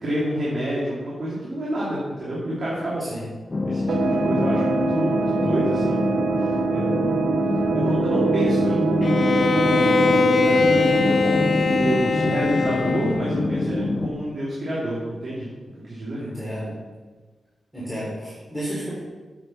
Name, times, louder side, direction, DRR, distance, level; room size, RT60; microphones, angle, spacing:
voice 1, 0.0-3.0 3.7-7.2 7.7-9.9 10.4-15.5 15.7-16.2, right 1 dB, 55° right, -7 dB, 2.8 m, -28 dB
sound 1, 3.5-14.1, left 2 dB, 30° left, 0.8 m, -25 dB
sound 2, 3.9-13.2, right 5 dB, 85° right, 0.7 m, -25 dB
Bowed string instrument, 9.0-13.4, left 5 dB, 50° left, 0.4 m, -22 dB
voice 2, 16.2-16.7 17.7-18.9, equal, ahead, -10 dB, 3.8 m, -32 dB
8.3 x 8.1 x 5.8 m, 1.3 s
wide cardioid pair, 135°, 0 cm